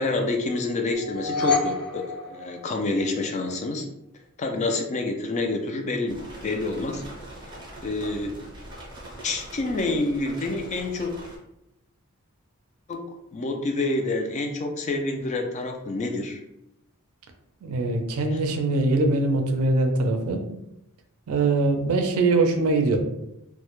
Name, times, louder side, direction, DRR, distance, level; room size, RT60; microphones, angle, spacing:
voice 1, 0.0-3.8 4.4-6.2 6.4-7.0 7.8-8.4 9.2-11.1 12.9-13.1 13.3-16.4, left 2 dB, 35° left, 3 dB, 0.3 m, -27 dB
sound 1, 0.9-3.2, left 4 dB, 85° left, 0.6 m, -28 dB
sound 2, 6.1-11.4, right 1 dB, 20° right, 0.5 m, -42 dB
voice 2, 17.6-20.4 21.3-23.0, right 2 dB, 80° right, 5 dB, 0.4 m, -22 dB
2.1 x 2.0 x 2.9 m, 0.83 s
head